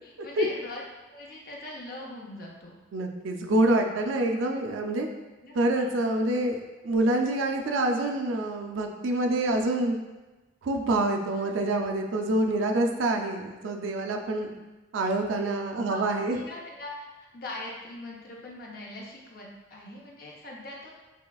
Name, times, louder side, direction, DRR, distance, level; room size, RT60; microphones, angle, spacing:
voice 1, 0.0-0.8 1.1-2.8 5.4-5.9 11.4-11.6 15.9-17.1 17.3-20.9, left 2 dB, 50° left, -2 dB, 0.6 m, -41 dB
voice 2, 2.9-5.1 5.6-10.0 10.6-14.5 14.9-16.4, right 2 dB, 85° right, 3 dB, 0.4 m, -26 dB
5.6 x 2.3 x 2.3 m, 1.2 s
head